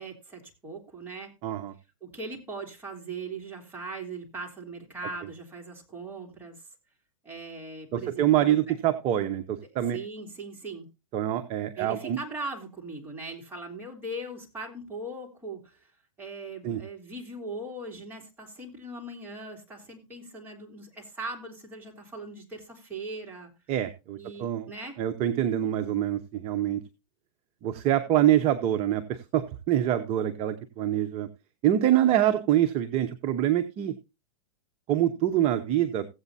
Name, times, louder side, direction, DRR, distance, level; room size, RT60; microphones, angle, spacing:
voice 1, 0.0-1.3 2.0-6.6 7.2-8.7 9.9-10.9 11.8-15.9 16.2-23.5 24.2-25.0, right 2 dB, 10° right, 0 dB, 3.0 m, -39 dB
voice 2, 1.4-1.7 7.9-10.0 11.1-12.2 16.6-16.8 23.7-24.7 25.0-26.8 27.6-31.3 31.6-33.9 34.9-36.1, right 11 dB, 30° right, 8 dB, 0.8 m, -25 dB
16.0 x 8.2 x 2.7 m, 0.26 s
hypercardioid pair, 135°, 19 cm